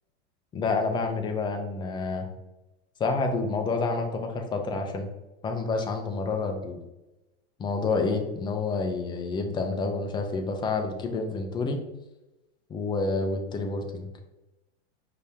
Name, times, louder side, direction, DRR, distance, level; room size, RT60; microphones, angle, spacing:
voice 1, 0.5-2.3 3.0-5.1 5.4-6.8 7.6-11.8 12.7-14.1, left 3 dB, 15° left, 4 dB, 0.4 m, -28 dB
5.1 x 2.8 x 3.4 m, 0.99 s
supercardioid pair, 130°, 34 cm